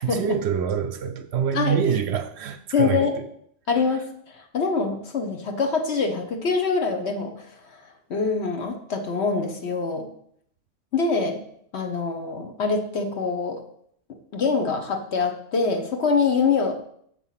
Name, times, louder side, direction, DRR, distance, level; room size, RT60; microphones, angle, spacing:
voice 1, 0.0-3.3, right 7 dB, 65° right, 9 dB, 0.8 m, -26 dB
voice 2, 2.7-3.1 3.7-4.1 4.3-7.8 8.1-10.1 10.9-11.4 11.7-13.6 14.3-16.8, left 4 dB, 60° left, 5 dB, 1.2 m, -24 dB
6.9 x 4.6 x 5.7 m, 0.67 s
omnidirectional pair, 1.3 m